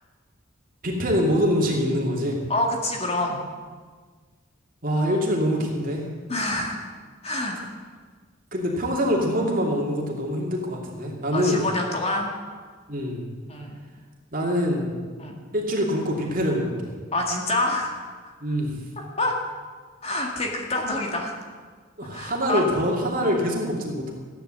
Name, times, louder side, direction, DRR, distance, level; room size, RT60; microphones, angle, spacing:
voice 1, 0.8-2.4 4.8-6.0 8.5-11.6 12.9-13.3 14.3-14.9 15.5-16.9 18.4-18.8 22.0-24.1, equal, 40° right, -1 dB, 2.8 m, -24 dB
voice 2, 2.5-3.4 6.3-6.8 7.2-7.6 11.3-12.3 13.5-13.8 15.2-15.4 17.1-18.3 19.0-19.3 20.0-21.3 22.0-22.6, left 2 dB, 30° left, 1 dB, 2.1 m, -27 dB
15.0 x 10.5 x 7.8 m, 1.5 s
head